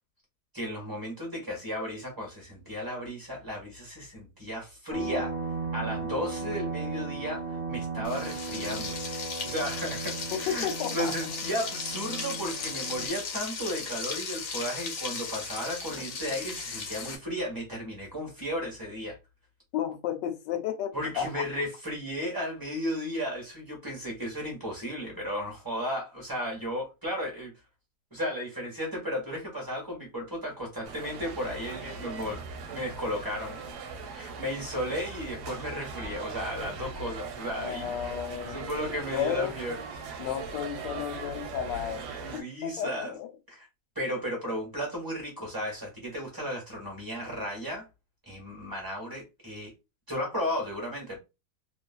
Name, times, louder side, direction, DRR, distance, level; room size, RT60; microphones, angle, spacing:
voice 1, 0.5-5.3 5.7-9.0 9.4-19.2 20.9-27.5 28.1-32.4 32.7-33.6 34.1-37.9 38.4-40.3 42.1-43.1 43.5-43.7 43.9-47.8 48.3-49.7 50.1-51.2, equal, 15° right, 1.0 m, -34 dB
sound 1, 4.9-13.1, right 4 dB, 55° right, 1.1 m, -36 dB
Frying (food), 8.0-17.2, left 5 dB, 60° left, 0.9 m, -36 dB
voice 2, 10.3-11.1 19.7-21.4 37.6-38.8 39.1-39.6 40.2-42.1 42.3-43.3, left 9 dB, 90° left, 1.2 m, -33 dB
sound 2, 30.8-42.4, right 5 dB, 70° right, 1.1 m, -40 dB
2.9 x 2.3 x 2.2 m
omnidirectional pair, 1.9 m